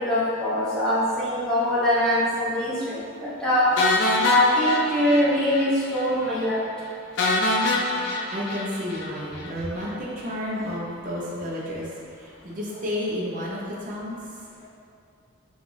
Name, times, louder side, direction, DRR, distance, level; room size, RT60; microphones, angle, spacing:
voice 1, 0.0-3.0 3.4-3.7 4.2-6.6, left 1 dB, 5° left, -11 dB, 0.8 m, -22 dB
sound 1, 3.8-5.7 5.9-6.1 6.4-6.5 7.2-9.5, left 2 dB, 55° left, 0.3 m, -25 dB
voice 2, 8.3-11.9 12.4-14.2, left 1 dB, 40° right, -5 dB, 0.6 m, -31 dB
4.6 x 2.4 x 2.6 m, 2.4 s
head